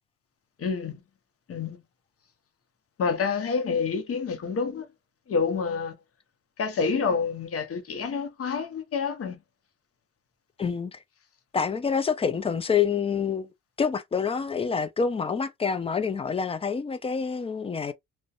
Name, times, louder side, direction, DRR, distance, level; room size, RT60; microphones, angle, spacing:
voice 1, 0.6-1.0 1.5-1.8 3.0-4.8 5.3-5.9 6.6-9.3, left 5 dB, 50° left, 0.8 m, -28 dB
voice 2, 10.6-11.0 11.5-13.5 13.8-17.9, left 6 dB, 20° left, 0.4 m, -27 dB
2.5 x 2.2 x 2.4 m
cardioid pair, 90°, 30 cm